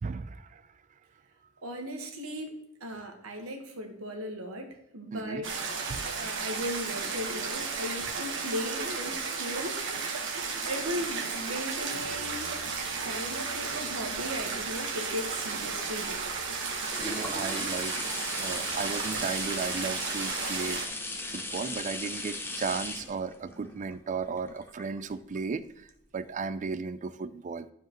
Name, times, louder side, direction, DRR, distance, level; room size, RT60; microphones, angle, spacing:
voice 1, 0.0-0.6 5.1-5.4 5.9-6.0 17.0-18.0 18.4-20.8 21.3-25.9 26.1-27.7, right 5 dB, 35° right, 14 dB, 0.4 m, -35 dB
voice 2, 1.6-2.5 2.8-5.5 6.1-10.2 10.6-12.5 13.0-16.2, equal, 80° right, 3 dB, 1.5 m, -37 dB
sound 1, 5.4-20.8, right 5 dB, 60° right, 1.4 m, -34 dB
Brass instrument, 11.9-19.4, right 2 dB, 60° left, 1.3 m, -55 dB
sound 2, 15.6-25.4 25.9-26.0, left 2 dB, 10° left, 0.8 m, -38 dB
11.5 x 4.9 x 3.0 m, 0.78 s
head